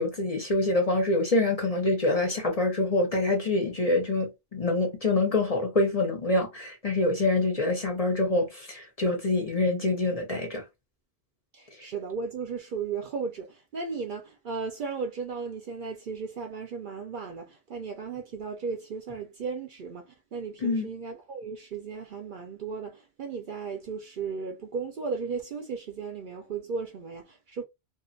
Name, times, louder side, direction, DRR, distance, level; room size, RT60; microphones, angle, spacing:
voice 1, 0.0-10.6 20.6-20.9, left 2 dB, 40° left, 0.6 m, -26 dB
voice 2, 11.5-27.6, right 5 dB, 60° right, 0.6 m, -35 dB
2.4 x 2.3 x 2.5 m
omnidirectional pair, 1.1 m